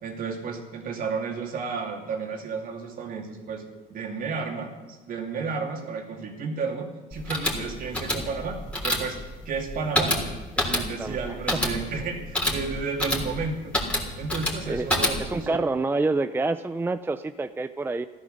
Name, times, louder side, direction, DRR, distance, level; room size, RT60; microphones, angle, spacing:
voice 1, 0.0-3.6 3.9-9.2 9.4-10.2 10.6-13.7 14.2-15.6, right 5 dB, 55° right, 2 dB, 2.8 m, -32 dB
sound 1, 7.1-15.5, left 1 dB, 5° left, 3.4 m, -28 dB
voice 2, 11.0-11.4 14.7-14.9 15.2-18.1, right 3 dB, 15° right, 11 dB, 0.4 m, -27 dB
14.5 x 13.0 x 6.7 m, 1.2 s
cardioid pair, 110°, 17 cm